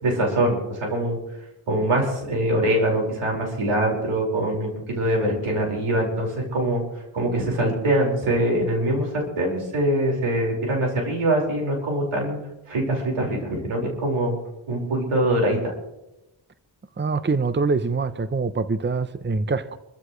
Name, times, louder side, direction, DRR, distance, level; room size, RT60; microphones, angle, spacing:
voice 1, 0.0-1.2 1.7-6.8 7.1-12.4 12.7-14.4 14.7-15.7, right 1 dB, 90° right, 5.3 m, -23 dB
voice 2, 17.0-19.8, right 4 dB, 25° right, 0.8 m, -24 dB
26.5 x 14.5 x 3.2 m
cardioid pair, 60°, 49 cm